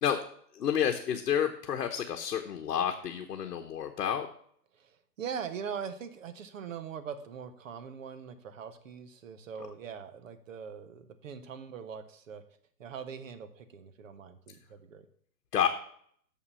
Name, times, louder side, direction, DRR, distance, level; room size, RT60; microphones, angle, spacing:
voice 1, 0.5-4.3 15.5-15.7, left 9 dB, 75° left, 4 dB, 1.0 m, -30 dB
voice 2, 4.7-12.4 12.8-15.1, right 7 dB, 55° right, 10 dB, 1.0 m, -42 dB
6.7 x 5.7 x 5.4 m, 0.62 s
hypercardioid pair, 165°, 47 cm